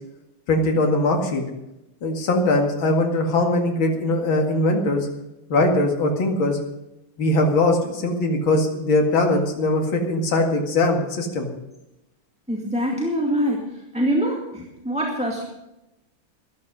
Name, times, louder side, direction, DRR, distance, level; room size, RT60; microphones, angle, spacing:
voice 1, 0.5-1.4 2.0-5.1 5.5-6.6 7.2-11.5, left 2 dB, 65° left, 2 dB, 2.9 m, -21 dB
voice 2, 12.5-15.4, equal, 5° right, -2 dB, 2.1 m, -24 dB
14.0 x 12.5 x 5.4 m, 0.91 s
omnidirectional pair, 2.4 m